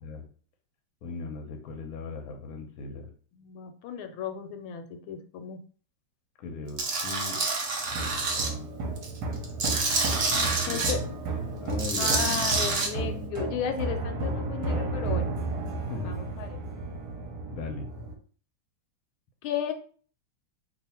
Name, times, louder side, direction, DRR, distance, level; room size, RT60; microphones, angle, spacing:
voice 1, 1.0-3.1 6.4-7.4 8.3-8.7 10.3-11.1 11.6-12.8 15.9-16.2 17.5-17.9, left 4 dB, 65° left, 3 dB, 0.9 m, -38 dB
voice 2, 3.4-5.6 10.6-11.0 12.0-15.4 16.0-16.6 19.4-19.7, left 8 dB, 85° left, 6 dB, 1.4 m, -34 dB
Tools, 6.8-8.5 9.0-10.9 11.7-12.9, right 3 dB, 80° right, 0.6 m, -27 dB
sound 1, 7.9-18.1, right 3 dB, 60° right, 1.1 m, -33 dB
3.1 x 2.4 x 4.2 m, 0.43 s
omnidirectional pair, 2.2 m